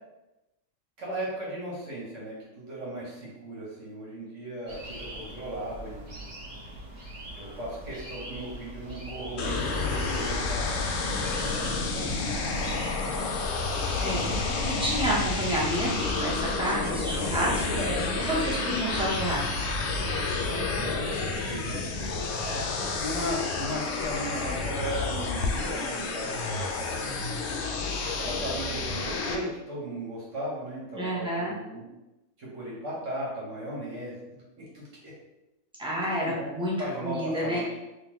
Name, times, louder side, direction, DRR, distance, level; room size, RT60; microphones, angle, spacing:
voice 1, 1.0-6.4 7.3-10.8 11.3-12.8 17.7-19.0 20.4-27.1 28.2-31.8 32.4-35.1 36.2-36.5 36.8-37.7, right 1 dB, 60° right, -5 dB, 1.5 m, -37 dB
sound 1, 4.7-20.4, right 1 dB, 35° right, 1.1 m, -42 dB
sound 2, 9.4-29.4, left 4 dB, 65° left, 0.7 m, -30 dB
voice 2, 14.7-17.8 18.2-19.5 31.0-31.5 35.8-36.7 37.0-37.6, right 1 dB, 5° right, -6 dB, 0.7 m, -29 dB
3.6 x 2.9 x 3.0 m, 0.99 s
omnidirectional pair, 1.4 m